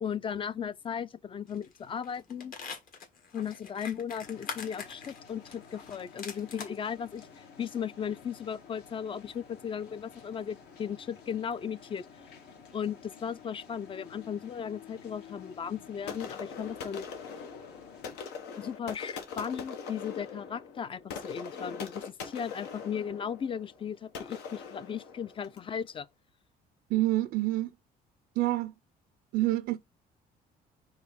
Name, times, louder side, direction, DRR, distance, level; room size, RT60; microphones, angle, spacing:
voice 1, 0.0-2.5 3.3-12.1 12.7-17.1 18.6-26.1, left 7 dB, 30° left, 0.4 m, -36 dB
sound 1, 1.5-1.8 2.0-6.8 7.2-7.3, left 5 dB, 55° left, 1.7 m, -43 dB
sound 2, 4.2-18.2, left 6 dB, 75° left, 1.9 m, -52 dB
sound 3, 16.1-25.7, left 6 dB, 90° left, 1.3 m, -42 dB
voice 2, 26.9-27.7 28.4-28.7 29.3-29.8, right 16 dB, 80° right, 0.4 m, -27 dB
4.8 x 3.6 x 5.6 m
cardioid pair, 110°, 17 cm